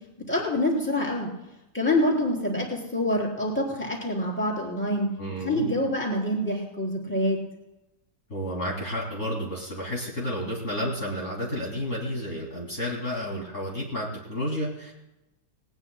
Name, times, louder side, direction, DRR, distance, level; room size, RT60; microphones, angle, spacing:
voice 1, 0.3-1.3 1.7-5.1 5.4-7.4, left 1 dB, 5° left, -3 dB, 3.8 m, -26 dB
voice 2, 5.2-5.8 8.3-14.9, equal, 40° left, -4 dB, 2.8 m, -31 dB
19.5 x 19.0 x 2.2 m, 0.94 s
omnidirectional pair, 1.9 m